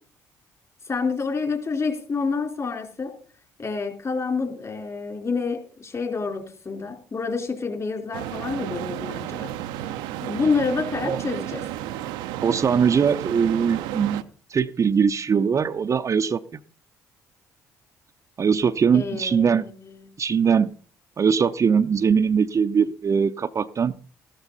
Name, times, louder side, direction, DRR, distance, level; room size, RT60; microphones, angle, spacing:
voice 1, 0.9-3.1 3.6-9.5 10.2-11.6 18.9-19.9, left 4 dB, 40° left, 4.0 m, -28 dB
sound 1, 8.1-14.2, right 13 dB, 80° right, 0.7 m, -32 dB
voice 2, 12.4-14.2 14.5-16.4 18.4-19.6 20.2-20.7 21.2-23.9, right 6 dB, 40° right, 0.7 m, -21 dB
14.0 x 13.0 x 4.0 m
hypercardioid pair, 60°, 8 cm